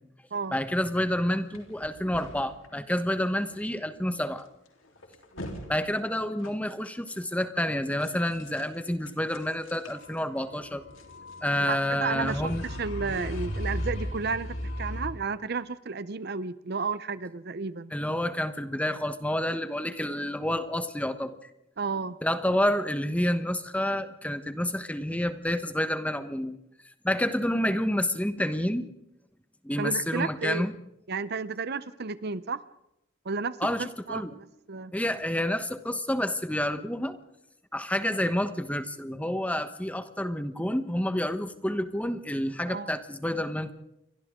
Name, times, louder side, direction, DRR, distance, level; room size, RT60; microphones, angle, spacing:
voice 1, 0.5-4.5 5.7-10.8 11.4-12.6 17.9-21.4 22.2-26.6 26.8-28.9 29.6-30.7 33.6-34.3 34.9-37.2 37.7-43.7, left 1 dB, 5° left, 10 dB, 1.1 m, -29 dB
sound 1, 1.5-2.7 3.4-3.6 3.8-3.9 4.4-4.5 4.9-5.7 6.0-6.1 6.4-6.9 8.0-8.8 9.1-15.1, equal, 75° left, 3.7 m, -37 dB
voice 2, 11.6-17.9 21.8-22.2 29.8-30.7 31.1-32.6 33.2-34.9 42.6-42.9, right 4 dB, 50° right, 15 dB, 0.7 m, -32 dB
29.5 x 24.0 x 3.8 m, 0.83 s
head